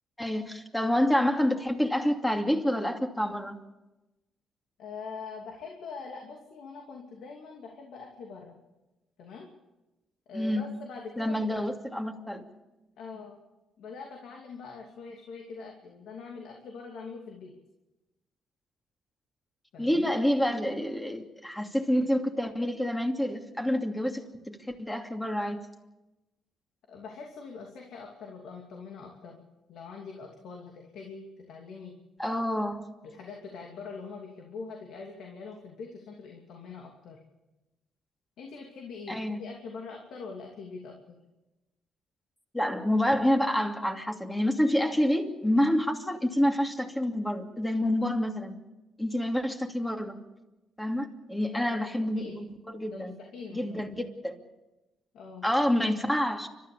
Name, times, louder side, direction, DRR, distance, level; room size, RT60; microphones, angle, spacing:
voice 1, 0.2-3.5 10.3-10.6 11.2-12.4 19.8-24.2 24.5-25.6 32.2-32.8 39.1-39.4 42.5-48.6 49.0-50.2 50.8-53.1 53.5-54.4 55.4-56.5, left 1 dB, 10° left, 4 dB, 2.7 m, -28 dB
voice 2, 4.8-8.6 9.2-9.5 10.3-11.6 13.0-13.3 13.8-17.5 19.7-20.1 26.9-29.4 29.7-31.9 33.0-37.2 38.4-41.2 51.5-52.4 52.8-53.9 55.1-55.5, left 4 dB, 75° left, 1 dB, 2.8 m, -43 dB
30.0 x 13.5 x 6.9 m, 1.0 s
cardioid pair, 90°, 0 cm